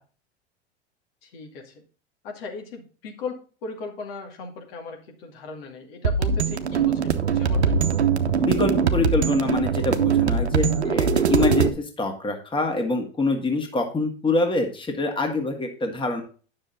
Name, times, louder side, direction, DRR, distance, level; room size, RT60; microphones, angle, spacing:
voice 1, 1.2-1.8 2.2-7.8, left 4 dB, 60° left, 2 dB, 2.5 m, -37 dB
sound 1, 6.0-11.7, right 6 dB, 85° right, 0.9 m, -22 dB
voice 2, 8.4-16.2, left 2 dB, 15° left, 3 dB, 2.0 m, -25 dB
9.8 x 6.6 x 3.9 m, 0.37 s
figure-of-eight pair, 80°, 32 cm